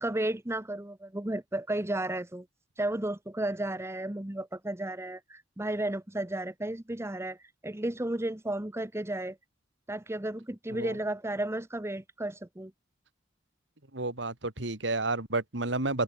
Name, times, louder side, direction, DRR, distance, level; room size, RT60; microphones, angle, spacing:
voice 1, 0.0-2.5 2.8-7.4 7.6-9.4 9.9-12.7, right 1 dB, 15° right, 1.0 m, -33 dB
voice 2, 13.9-16.0, right 2 dB, 70° right, 2.9 m, -31 dB
head